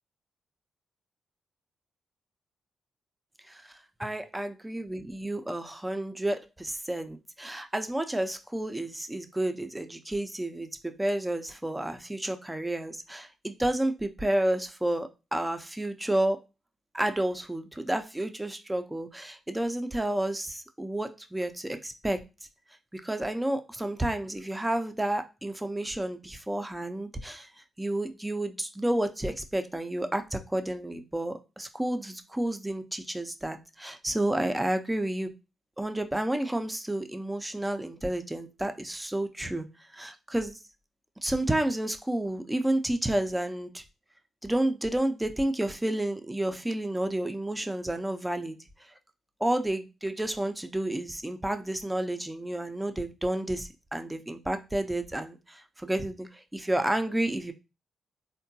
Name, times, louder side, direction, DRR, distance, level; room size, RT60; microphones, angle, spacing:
voice 1, 3.5-16.4 16.9-22.2 22.9-27.5 27.8-35.3 35.8-39.7 39.9-40.6 41.2-43.8 44.4-48.6 49.4-57.5, right 1 dB, 10° right, 7 dB, 0.5 m, -30 dB
3.5 x 2.2 x 2.7 m, 0.28 s
hypercardioid pair, 45°, 0 cm